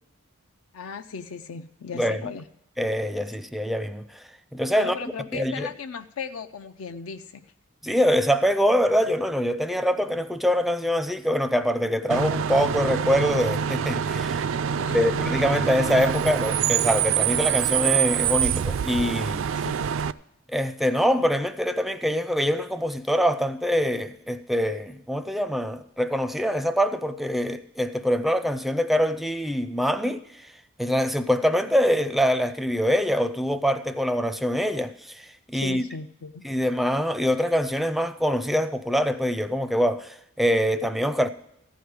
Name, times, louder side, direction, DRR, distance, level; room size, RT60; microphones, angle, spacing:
voice 1, 0.7-2.5 4.8-7.5 14.7-15.4 19.6-19.8 35.5-36.5, left 5 dB, 75° left, 0.5 m, -37 dB
voice 2, 2.8-4.2 4.5-5.0 5.3-5.7 7.8-14.5 14.9-19.4 20.5-30.5 30.8-35.8 36.4-41.3, equal, ahead, 0.4 m, -24 dB
Bus / Idling / Screech, 12.1-20.1, right 8 dB, 65° right, 0.3 m, -25 dB
15.0 x 5.1 x 9.3 m
head